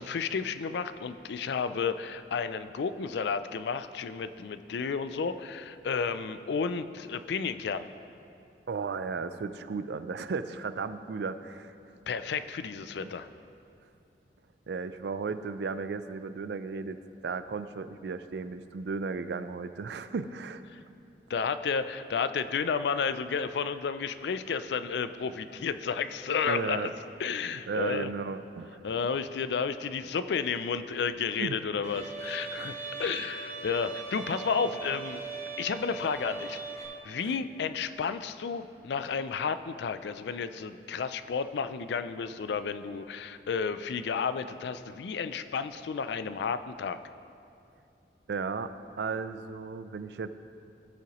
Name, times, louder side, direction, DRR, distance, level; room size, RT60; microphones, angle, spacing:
voice 1, 0.0-7.8 12.1-13.3 20.7-20.8 21.3-26.9 27.2-28.1 28.8-32.7 33.0-35.2 35.6-36.6 37.0-47.0, left 6 dB, 75° left, 11 dB, 0.4 m, -32 dB
voice 2, 8.7-11.7 13.0-13.2 14.7-17.0 17.2-20.6 26.5-26.9 27.5-28.8 31.4-31.6 32.6-32.7 37.2-37.3 48.3-50.3, right 4 dB, 70° right, 12 dB, 0.4 m, -35 dB
Bowed string instrument, 31.8-36.8, right 4 dB, 40° right, 1.6 m, -39 dB
17.0 x 5.7 x 3.0 m, 2.6 s
head